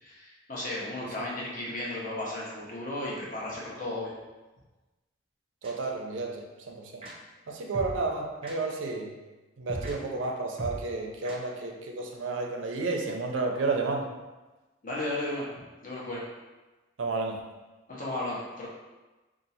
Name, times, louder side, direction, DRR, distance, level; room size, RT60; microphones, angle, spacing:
voice 1, 0.0-4.1 14.8-15.5 15.8-16.2 17.9-18.7, left 1 dB, 45° left, -5 dB, 0.9 m, -34 dB
sound 1, 5.6-5.7 7.0-7.1 7.7-8.0 8.4-8.5 9.7-9.9 10.6-10.8 11.2-11.4, right 1 dB, 30° right, 0.6 m, -37 dB
voice 2, 5.6-7.0 7.5-9.1 9.6-14.1 17.0-17.4, right 3 dB, 85° right, 2 dB, 0.5 m, -31 dB
2.7 x 2.4 x 4.1 m, 1.2 s
head